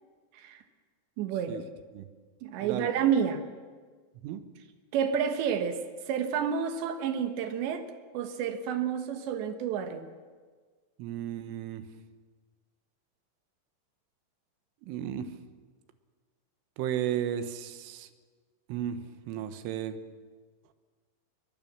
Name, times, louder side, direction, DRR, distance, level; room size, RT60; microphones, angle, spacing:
voice 1, 1.2-1.6 2.4-3.5 4.9-7.8 8.1-10.1, right 7 dB, 70° right, 8 dB, 3.2 m, -30 dB
voice 2, 11.0-11.9 14.8-15.3 16.8-18.1 18.7-19.0 19.3-20.0, right 10 dB, 90° right, 10 dB, 3.7 m, -34 dB
23.5 x 20.0 x 7.4 m, 1.5 s
omnidirectional pair, 5.6 m